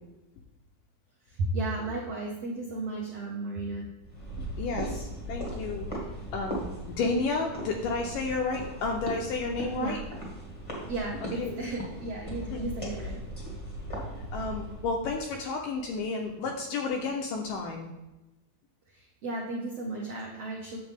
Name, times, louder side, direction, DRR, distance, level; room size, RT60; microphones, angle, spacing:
voice 1, 1.3-3.9 9.8-10.0 10.9-13.2 18.9-20.8, right 2 dB, 80° right, -2 dB, 1.4 m, -34 dB
sound 1, 4.0-14.9, equal, 25° left, 0.7 m, -38 dB
voice 2, 4.6-5.9 6.3-6.6 7.0-10.0 11.2-11.6 12.5-12.6 14.0-17.9, left 3 dB, 80° left, 2 dB, 2.0 m, -31 dB
9.3 x 7.2 x 3.5 m, 1.0 s
omnidirectional pair, 4.4 m